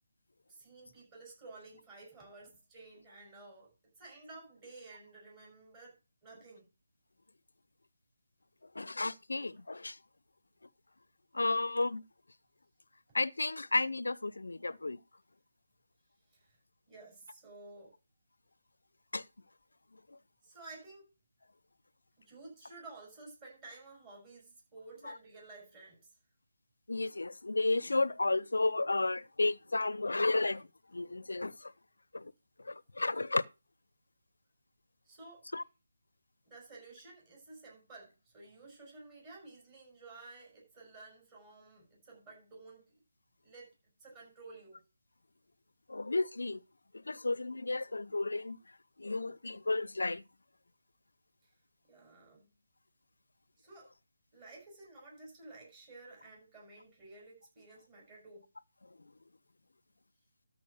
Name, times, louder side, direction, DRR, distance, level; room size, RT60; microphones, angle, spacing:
voice 1, 0.5-3.7 3.9-6.7 16.3-16.6 16.9-17.9 20.4-21.1 22.2-26.2 35.0-35.5 36.4-43.0 43.4-43.7 44.0-44.8 51.4-51.5 51.9-52.5 53.6-53.9 54.3-58.5, right 3 dB, 20° right, 6.9 m, -53 dB
voice 2, 8.7-10.0 11.3-12.0 13.1-15.0 19.1-19.2 25.1-25.2 26.9-31.7 32.1-32.3 32.6-33.4 35.5-35.6 45.9-46.6 46.9-48.6 49.0-50.2, left 2 dB, 70° left, 0.7 m, -32 dB
13.0 x 5.1 x 6.6 m
figure-of-eight pair, 155°, 0 cm